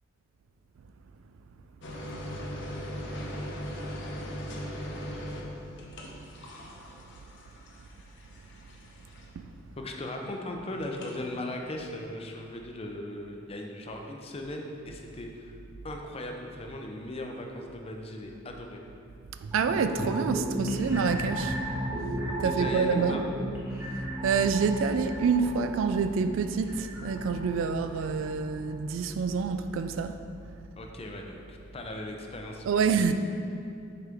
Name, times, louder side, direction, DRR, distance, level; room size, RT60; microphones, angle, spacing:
sound 1, 1.8-9.5 10.8-11.2, equal, 65° left, 0.8 m, -39 dB
voice 1, 9.8-15.6 15.8-18.8 22.4-23.2 30.8-33.1, left 1 dB, 30° left, 2 dB, 0.6 m, -38 dB
voice 2, 19.4-21.6 22.4-23.2 24.0-30.2 32.7-33.1, right 5 dB, 75° right, 9 dB, 0.3 m, -27 dB
sound 2, 19.5-28.8 29.2-29.3, right 1 dB, 10° right, 0.9 m, -35 dB
6.6 x 4.9 x 3.5 m, 2.6 s
head